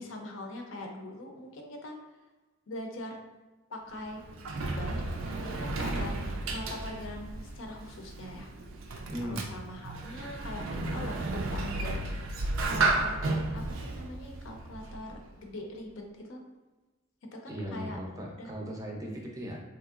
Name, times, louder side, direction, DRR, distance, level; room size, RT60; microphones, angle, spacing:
voice 1, 0.0-2.0 2.7-3.2 3.7-4.2 4.6-5.0 5.4-6.1 6.5-8.5 8.9-16.4 17.3-18.5, left 1 dB, 65° left, 2 dB, 0.5 m, -42 dB
Sliding door, 3.9-15.3, right 2 dB, 70° right, 0.4 m, -33 dB
voice 2, 9.1-9.5 17.5-19.6, equal, 15° right, -1 dB, 0.5 m, -38 dB
3.6 x 2.9 x 2.4 m, 1.2 s
head